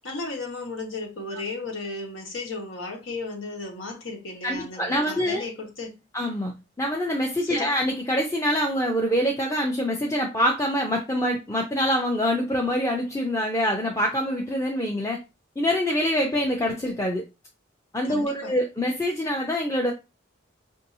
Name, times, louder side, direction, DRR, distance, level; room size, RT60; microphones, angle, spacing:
voice 1, 0.0-6.0 7.4-7.8 18.0-18.5, left 3 dB, 90° left, 1.4 m, -35 dB
voice 2, 4.4-5.4 6.1-15.2 15.6-17.2 17.9-19.9, equal, 15° left, 0.5 m, -25 dB
5.3 x 2.7 x 2.7 m
head